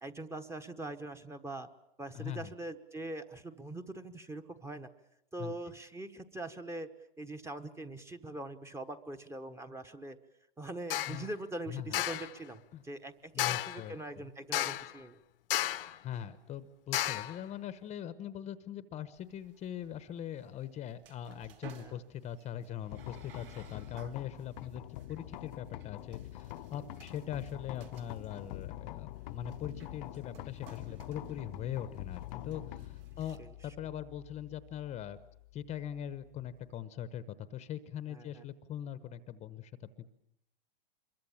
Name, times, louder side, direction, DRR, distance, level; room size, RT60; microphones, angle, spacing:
voice 1, 0.0-1.7 2.0-4.9 5.3-6.9 7.2-10.2 10.6-15.2 21.7-22.0 33.4-33.5 38.1-38.4, right 2 dB, 10° right, 8 dB, 1.2 m, -43 dB
voice 2, 2.1-2.5 5.4-5.5 11.1-11.3 11.7-12.0 12.7-12.8 13.3-14.3 16.0-35.2 35.5-40.1, left 10 dB, 20° left, 13 dB, 1.0 m, -41 dB
sound 1, 10.9-11.2 11.9-12.3 13.4-13.8 14.5-15.0 15.5-16.0 16.9-17.4, left 14 dB, 65° left, 1.1 m, -32 dB
sound 2, 19.1-33.4, right 9 dB, 65° right, 3.2 m, -59 dB
sound 3, 22.9-36.8, left 16 dB, 50° left, 0.9 m, -46 dB
26.0 x 23.0 x 7.3 m, 0.84 s
hypercardioid pair, 135°, 30 cm